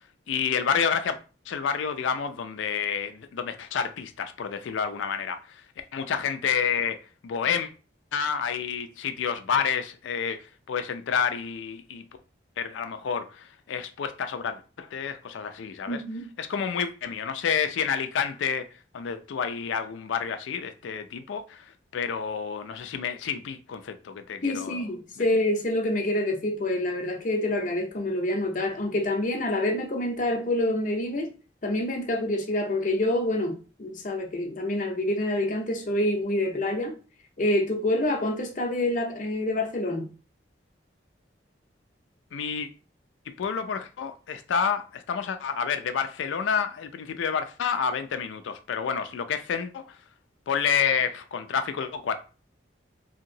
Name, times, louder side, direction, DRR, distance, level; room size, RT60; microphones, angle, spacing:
voice 1, 0.3-1.2 1.5-5.4 5.9-7.0 7.2-7.7 8.1-10.4 10.7-12.0 12.6-16.0 16.4-18.6 18.9-21.6 21.9-24.8 42.3-42.7 43.4-49.9 50.5-52.1, left 7 dB, 85° left, 0.4 m, -29 dB
voice 2, 15.9-16.3 24.4-31.3 31.6-37.0 37.4-40.1, left 1 dB, 45° left, 0.6 m, -27 dB
2.8 x 2.8 x 2.6 m
head